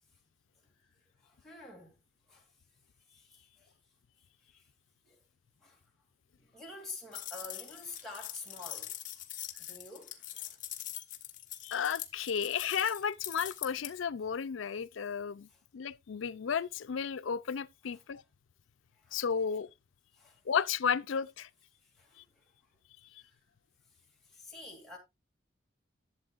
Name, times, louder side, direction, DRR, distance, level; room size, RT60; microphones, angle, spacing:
voice 1, 1.2-2.0 2.3-2.5 3.1-3.7 4.5-4.6 5.0-5.2 5.6-5.8 6.4-9.1 9.6-10.6 15.5-15.6 19.0-19.2 20.2-20.4 22.0-22.5 23.1-23.4 24.3-25.0, left 3 dB, ahead, 2.6 m, -48 dB
sound 1, 7.1-13.9, left 13 dB, 45° left, 1.0 m, -43 dB
voice 2, 11.6-15.5 15.7-18.2 19.1-19.7 20.5-21.5, left 7 dB, 90° left, 0.5 m, -33 dB
11.5 x 7.4 x 2.5 m
head